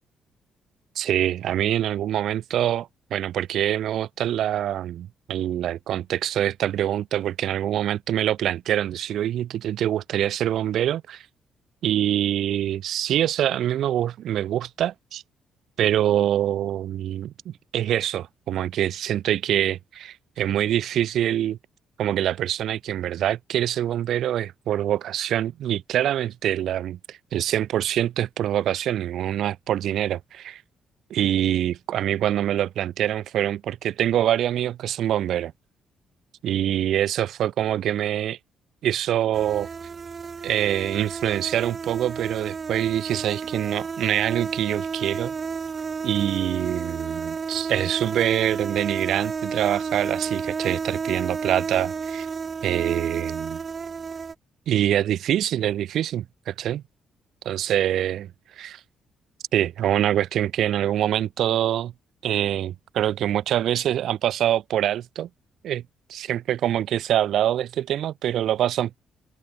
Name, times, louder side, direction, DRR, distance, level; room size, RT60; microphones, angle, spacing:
voice 1, 1.0-11.2 11.8-15.2 15.8-21.6 22.0-30.6 31.1-35.5 36.4-38.4 38.8-39.7 40.4-45.3 46.0-52.3 52.6-53.6 54.7-56.8 57.5-58.3 58.6-58.8 59.5-61.9 62.2-65.3 65.6-65.8 66.1-69.0, right 11 dB, 75° right, 0.6 m, -25 dB
sound 1, 39.3-54.3, right 5 dB, 40° right, 2.4 m, -31 dB
cardioid pair, 90°, 0 cm